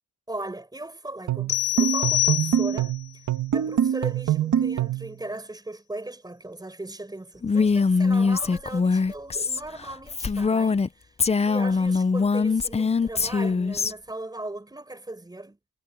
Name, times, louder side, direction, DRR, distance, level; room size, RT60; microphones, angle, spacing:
voice 1, 0.3-2.9 3.5-15.6, right 2 dB, 10° right, 5.2 m, -38 dB
sound 1, 1.3-5.1, right 10 dB, 50° right, 1.6 m, -24 dB
sound 2, 1.5-3.0, left 18 dB, 70° left, 0.5 m, -26 dB
Female speech woman speaking, 7.4-10.9 11.2-13.9, left 4 dB, 15° left, 0.6 m, -22 dB
cardioid pair, 145°, 38 cm